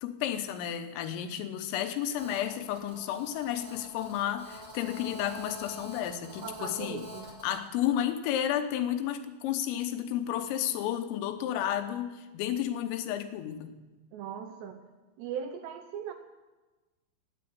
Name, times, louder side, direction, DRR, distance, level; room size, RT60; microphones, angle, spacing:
voice 1, 0.0-7.0 7.4-13.7, left 10 dB, 80° left, 8 dB, 3.7 m, -32 dB
Telephone, 2.2-7.6, left 1 dB, 30° right, 4.7 m, -46 dB
voice 2, 6.4-7.3 14.1-14.8 15.2-16.1, right 8 dB, 80° right, 7 dB, 2.6 m, -39 dB
16.5 x 9.2 x 9.6 m, 1.2 s
omnidirectional pair, 5.9 m